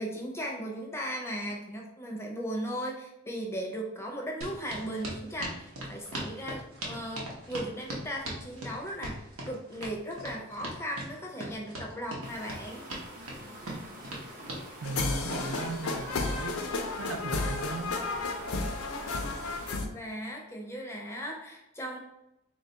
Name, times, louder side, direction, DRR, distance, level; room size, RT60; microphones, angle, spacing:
voice 1, 0.0-12.9 19.9-22.0, equal, 10° left, 0 dB, 0.5 m, -37 dB
sound 1, 4.4-14.6, right 1 dB, 80° right, 0.9 m, -39 dB
sound 2, 12.2-19.8, right 1 dB, 40° right, 0.8 m, -46 dB
sound 3, 14.8-19.9, left 3 dB, 90° left, 0.5 m, -32 dB
voice 2, 14.8-16.6 17.0-17.9, right 3 dB, 65° right, 5 dB, 0.4 m, -37 dB
3.1 x 2.3 x 3.8 m, 0.87 s
head